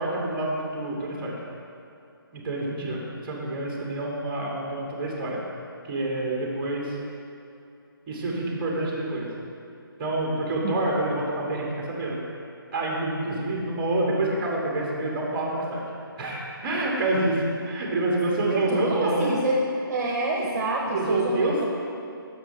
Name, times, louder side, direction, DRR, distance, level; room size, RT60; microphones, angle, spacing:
voice 1, 0.0-1.3 2.3-5.4 5.9-6.9 8.1-9.3 10.0-12.2 12.7-15.8 16.2-19.4 20.9-21.7, right 2 dB, 25° right, -2 dB, 1.4 m, -27 dB
voice 2, 18.5-19.6 19.9-21.7, right 2 dB, 45° right, -3 dB, 1.1 m, -27 dB
6.5 x 4.8 x 6.5 m, 2.6 s
figure-of-eight pair, 150°, 12 cm